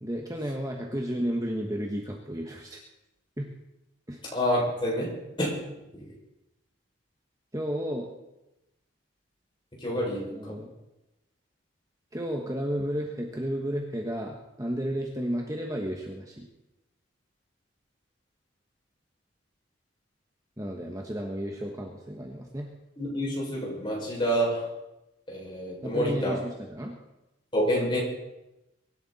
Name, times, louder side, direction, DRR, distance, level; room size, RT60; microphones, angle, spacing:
voice 1, 0.0-2.8 3.4-3.5 4.1-4.2 7.5-8.1 10.3-10.7 12.1-16.5 20.6-22.7 25.8-26.9, equal, 15° right, 1 dB, 1.4 m, -32 dB
voice 2, 4.3-5.1 5.4-5.5 9.8-10.6 23.0-24.7 25.3-26.3 27.5-28.0, equal, 25° left, -4 dB, 6.2 m, -28 dB
23.5 x 11.5 x 4.3 m, 0.94 s
head